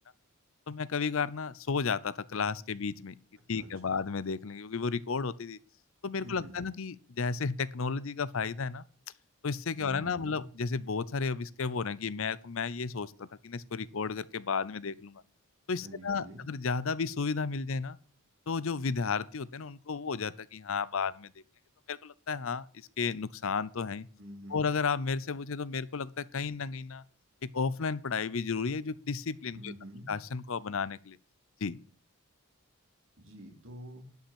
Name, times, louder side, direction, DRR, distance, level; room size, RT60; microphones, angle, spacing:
voice 1, 0.7-3.2 3.5-5.6 6.0-8.8 9.4-15.2 15.7-18.0 18.5-21.3 21.9-24.1 24.5-27.0 27.4-29.7 30.1-31.2 31.6-31.8, left 5 dB, 65° left, 0.6 m, -33 dB
voice 2, 3.5-4.0 6.2-6.5 9.8-10.4 15.8-16.5 24.2-24.7 29.5-30.1 33.2-34.1, equal, 60° right, 3.8 m, -47 dB
11.5 x 5.8 x 8.8 m
head